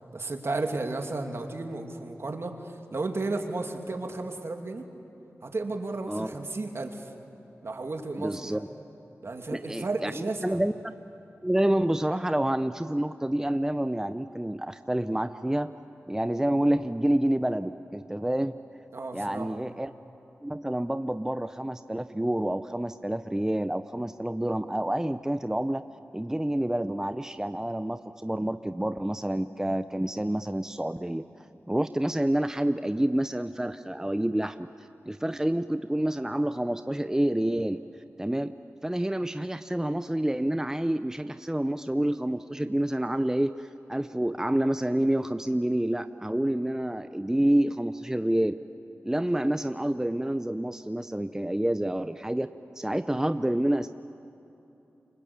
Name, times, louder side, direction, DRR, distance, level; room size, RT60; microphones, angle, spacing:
voice 1, 0.1-4.8 5.4-7.1 7.6-8.6 9.2-10.6 18.9-19.6, right 3 dB, 55° right, 4 dB, 2.8 m, -33 dB
voice 2, 8.1-8.7 9.5-10.1 10.4-10.9 11.4-15.7 16.1-18.6 19.1-19.9 20.4-25.8 26.1-34.6 35.1-37.8 38.2-38.5 38.8-48.6 49.0-52.5 52.8-53.9, right 1 dB, 10° right, 10 dB, 0.7 m, -28 dB
28.0 x 25.0 x 8.7 m, 3.0 s
cardioid pair, 50°, 5 cm